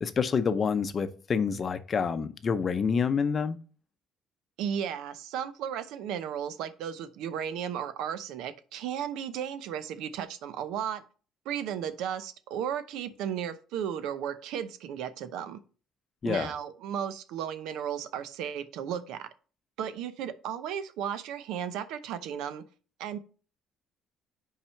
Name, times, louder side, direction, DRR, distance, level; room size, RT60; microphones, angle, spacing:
voice 1, 0.0-3.6 16.2-16.5, left 6 dB, 30° left, 0.6 m, -27 dB
voice 2, 4.6-11.0 11.4-15.6 16.2-19.3 19.8-22.6 23.0-23.2, right 9 dB, 85° right, 0.7 m, -34 dB
5.9 x 4.8 x 5.6 m
cardioid pair, 150°, 0 cm